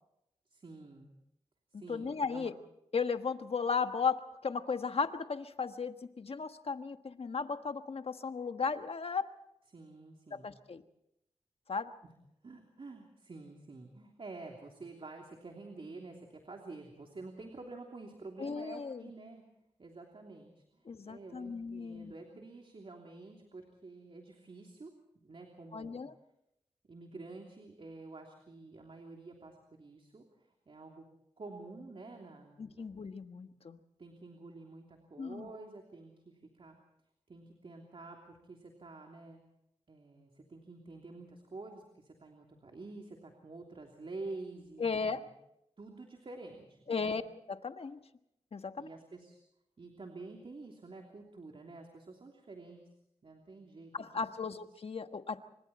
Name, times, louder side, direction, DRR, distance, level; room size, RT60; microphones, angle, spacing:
voice 1, 0.5-1.1 1.7-2.5 9.7-10.5 12.0-12.1 12.4-19.4 19.8-26.0 26.8-30.2 30.7-31.0 31.4-33.0 34.0-36.8 37.3-39.4 39.9-45.3 45.8-47.2 48.8-49.4 49.8-52.8 53.2-54.1 54.4-54.6, right 3 dB, 50° right, 2 dB, 3.2 m, -49 dB
voice 2, 1.7-2.5 2.9-9.3 10.4-10.8 11.7-11.9 18.4-19.1 20.8-22.1 25.7-26.1 32.6-33.8 35.2-35.5 44.8-45.2 46.9-47.2 47.5-48.0 48.5-48.9 53.9-55.4, left 5 dB, 60° left, 8 dB, 1.4 m, -35 dB
28.0 x 25.0 x 4.3 m, 0.81 s
cardioid pair, 65°, 12 cm